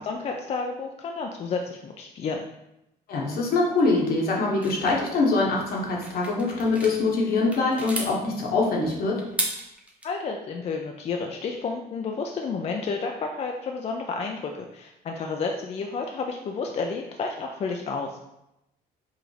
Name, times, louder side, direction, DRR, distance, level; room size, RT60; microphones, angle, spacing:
voice 1, 0.0-2.5 10.0-18.2, left 4 dB, 40° left, 2 dB, 0.4 m, -31 dB
voice 2, 3.1-9.2, left 3 dB, 65° left, -2 dB, 1.1 m, -24 dB
sound 1, 4.6-7.0 7.4-8.1 9.2-10.1, right 1 dB, 10° right, 0.7 m, -33 dB
4.8 x 2.5 x 3.2 m, 0.87 s
cardioid pair, 110°, 17 cm